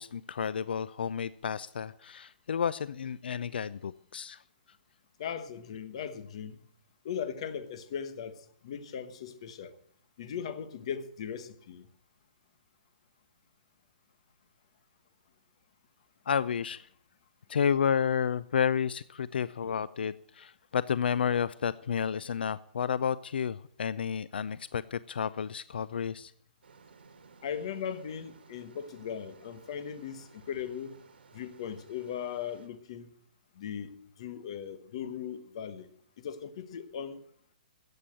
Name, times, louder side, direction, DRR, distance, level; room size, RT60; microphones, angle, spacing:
voice 1, 0.0-4.4 16.3-16.9 17.5-26.3, left 7 dB, 75° left, 0.4 m, -31 dB
voice 2, 5.2-6.6 7.0-9.7 10.2-11.9 27.4-31.0 31.3-33.1 33.5-33.9 34.2-35.9 36.2-37.2, left 8 dB, 35° left, 1.1 m, -38 dB
sound 1, 26.6-32.7, right 5 dB, 80° right, 2.4 m, -58 dB
14.5 x 8.7 x 7.5 m
hypercardioid pair, 180°, 5 cm